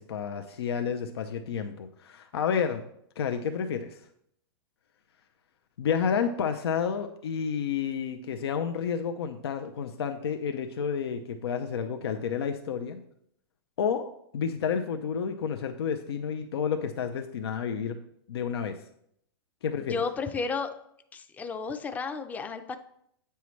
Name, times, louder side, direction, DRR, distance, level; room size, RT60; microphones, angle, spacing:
voice 1, 0.0-2.8 3.2-4.0 5.8-13.0 13.8-18.0 18.3-18.8 19.6-20.0, left 7 dB, 80° left, 6 dB, 0.6 m, -30 dB
voice 2, 19.9-20.7 21.1-22.8, left 4 dB, 10° left, 8 dB, 0.5 m, -32 dB
8.3 x 5.6 x 3.1 m, 0.71 s
hypercardioid pair, 130°, 13 cm